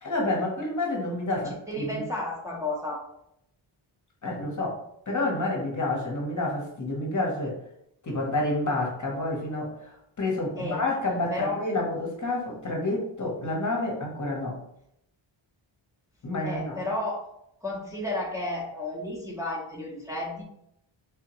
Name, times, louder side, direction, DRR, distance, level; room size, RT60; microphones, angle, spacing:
voice 1, 0.0-2.1 4.2-4.8 5.1-7.6 8.0-14.6 16.2-16.8, left 2 dB, 35° left, -1 dB, 0.9 m, -29 dB
voice 2, 1.3-3.0 10.6-10.9 11.3-11.6 16.4-17.3 17.6-20.4, left 2 dB, 5° right, -4 dB, 0.7 m, -32 dB
3.5 x 2.8 x 2.9 m, 0.76 s
wide cardioid pair, 100°, 49 cm